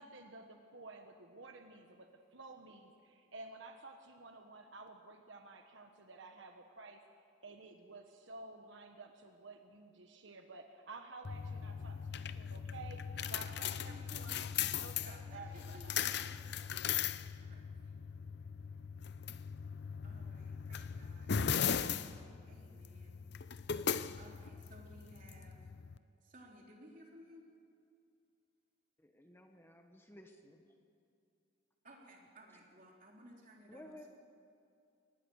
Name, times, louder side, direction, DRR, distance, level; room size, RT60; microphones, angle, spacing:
voice 1, 0.0-7.0 7.4-13.0 13.3-14.5 14.8-16.0, right 3 dB, 70° right, 5 dB, 1.3 m, -53 dB
sound 1, 11.2-26.0, left 7 dB, 55° left, 0.6 m, -39 dB
voice 2, 13.2-14.4 15.0-16.6 17.4-17.9 20.0-21.3 21.7-23.2 24.1-25.7 26.2-27.5 31.8-34.1, right 1 dB, 40° right, -1 dB, 3.8 m, -58 dB
voice 3, 29.0-30.7 33.7-34.1, left 1 dB, 10° left, 4 dB, 1.2 m, -56 dB
24.0 x 19.0 x 6.5 m, 2.5 s
head